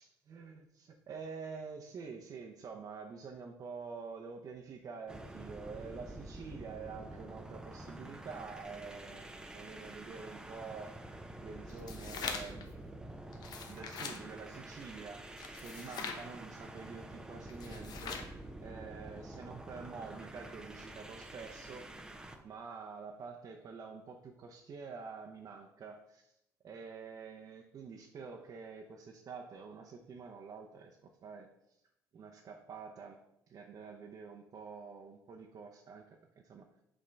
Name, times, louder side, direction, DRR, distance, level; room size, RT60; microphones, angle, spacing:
voice 1, 0.0-11.0 11.4-12.7 13.6-15.3 15.6-18.2 18.6-21.9 22.4-26.4 26.6-31.8 32.1-33.2 33.5-36.1 36.4-36.7, right 5 dB, 50° right, 1 dB, 0.7 m, -47 dB
sound 1, 5.1-22.4, right 1 dB, 10° right, 0.6 m, -48 dB
sound 2, 11.7-12.7 13.3-14.2 15.4-16.2 17.5-18.3, left 6 dB, 60° left, 0.8 m, -42 dB
5.5 x 3.6 x 5.2 m, 0.81 s
supercardioid pair, 85°, 8 cm